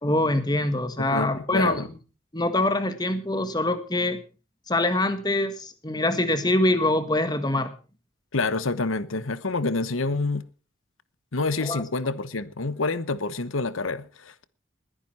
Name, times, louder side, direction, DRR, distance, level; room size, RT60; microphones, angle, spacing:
voice 1, 0.0-1.9 2.3-4.2 4.7-7.7 11.6-11.8, left 1 dB, 20° left, 1.6 m, -24 dB
voice 2, 1.0-1.9 8.3-10.5 11.3-14.4, left 3 dB, 85° left, 1.1 m, -27 dB
20.5 x 10.5 x 4.3 m
head